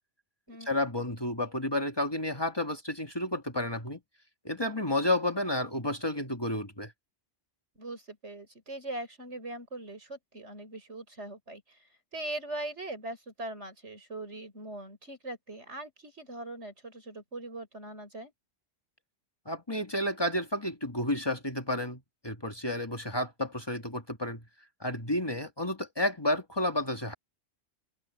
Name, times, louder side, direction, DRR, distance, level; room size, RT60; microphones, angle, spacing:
voice 1, 0.6-4.0 4.4-6.9 19.4-24.4 24.8-27.1, left 1 dB, 20° left, 1.7 m, -31 dB
voice 2, 7.7-18.3, right 2 dB, 85° right, 6.5 m, -41 dB
open air
omnidirectional pair, 1.2 m